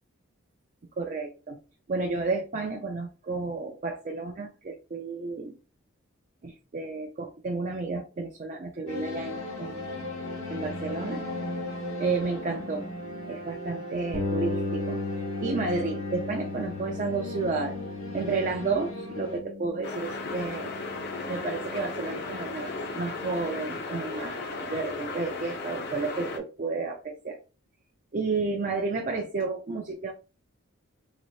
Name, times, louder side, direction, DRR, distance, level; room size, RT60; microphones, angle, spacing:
voice 1, 1.0-1.6 1.9-5.6 6.4-9.9 10.5-11.2 12.0-12.9 13.3-15.0 15.4-17.8 18.1-20.7 21.3-27.4 28.1-30.1, right 3 dB, 35° right, 2 dB, 0.4 m, -31 dB
sound 1, 8.9-19.4, left 1 dB, 75° left, 1.0 m, -37 dB
sound 2, 14.1-23.8, left 3 dB, 60° right, 1.0 m, -36 dB
sound 3, 19.8-26.4, left 3 dB, 50° left, 0.6 m, -35 dB
3.8 x 2.1 x 3.0 m, 0.34 s
head